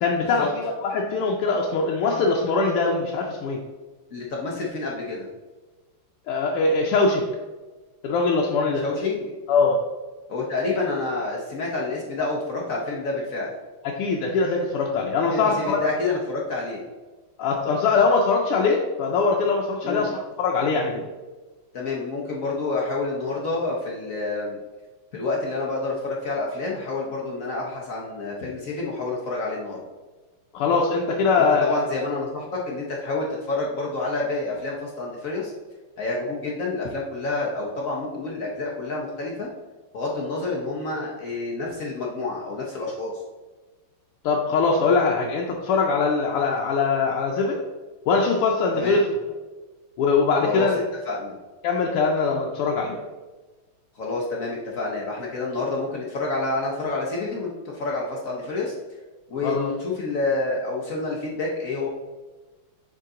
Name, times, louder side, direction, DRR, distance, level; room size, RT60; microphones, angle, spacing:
voice 1, 0.0-3.6 6.3-7.3 8.0-8.8 9.5-9.8 14.0-15.8 17.4-21.0 30.5-31.8 44.2-47.6 48.1-49.0 50.0-50.8 51.6-53.0 59.4-59.7, left 4 dB, 85° left, -1 dB, 1.6 m, -22 dB
voice 2, 4.1-5.3 8.8-9.3 10.3-13.5 15.3-16.8 19.8-20.1 21.7-24.6 25.1-29.8 31.4-35.5 36.0-39.5 39.9-43.1 48.7-49.0 50.4-50.7 51.1-51.3 53.9-58.7 59.3-61.9, left 3 dB, 60° left, -2 dB, 0.8 m, -28 dB
6.6 x 3.9 x 3.7 m, 1.2 s
omnidirectional pair, 2.4 m